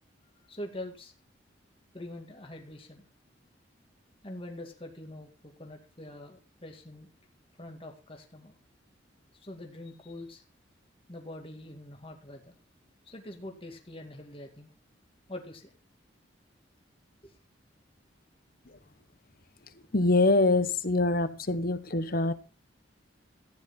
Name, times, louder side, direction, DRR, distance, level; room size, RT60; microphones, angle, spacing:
voice 1, 0.5-1.1 1.9-3.1 4.2-7.1 7.6-8.6 9.3-10.4 11.1-12.6 13.0-14.7 15.3-15.7 17.2-17.4, left 1 dB, 30° left, 2.2 m, -44 dB
voice 2, 19.9-22.3, left 2 dB, 50° left, 1.2 m, -25 dB
14.5 x 9.9 x 4.3 m
head